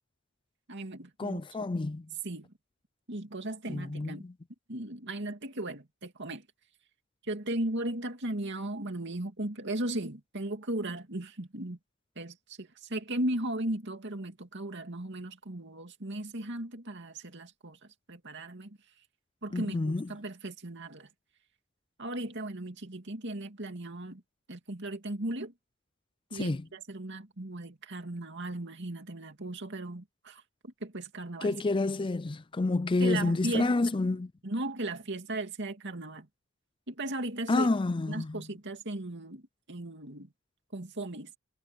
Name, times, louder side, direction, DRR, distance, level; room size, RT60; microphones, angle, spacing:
voice 1, 0.7-1.7 2.2-2.5 3.1-4.2 4.7-6.5 7.3-11.8 12.2-17.8 18.1-18.8 19.4-21.1 22.0-24.2 24.5-25.5 26.3-31.5 33.0-33.7 34.4-36.3 36.9-37.7 38.1-40.3 40.7-41.3, right 1 dB, 55° right, 2.6 m, -36 dB
voice 2, 1.2-2.1 3.7-4.3 19.5-20.1 26.3-26.6 31.4-34.3 37.5-38.4, left 2 dB, 25° left, 0.4 m, -29 dB
head